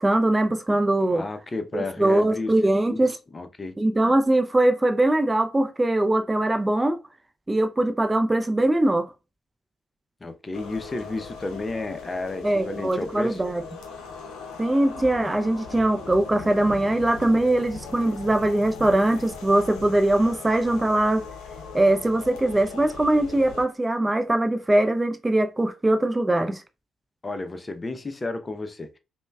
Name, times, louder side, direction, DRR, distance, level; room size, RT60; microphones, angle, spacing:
voice 1, 0.0-1.2 1.7-3.2 3.8-7.0 7.5-9.1 12.4-13.6 14.6-21.2 21.7-26.6, right 1 dB, 20° right, 0.5 m, -22 dB
voice 2, 1.0-3.7 10.2-13.4 27.2-29.0, left 2 dB, 30° left, 0.6 m, -32 dB
sound 1, 10.5-23.7, left 4 dB, 70° left, 0.6 m, -39 dB
5.1 x 2.2 x 2.2 m
figure-of-eight pair, 40°, 0 cm